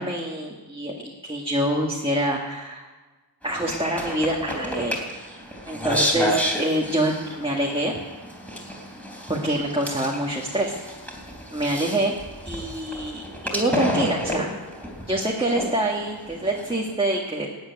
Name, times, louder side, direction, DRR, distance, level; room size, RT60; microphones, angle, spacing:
voice 1, 0.0-2.9 3.4-5.0 5.7-7.9 9.3-10.8 11.5-12.2 12.4-13.2 13.5-14.5 15.1-17.5, right 1 dB, 10° right, -2 dB, 1.8 m, -25 dB
sound 1, 3.4-16.9, equal, 5° left, 3.6 m, -31 dB
16.0 x 8.8 x 9.7 m, 1.3 s
wide cardioid pair, 105°, 44 cm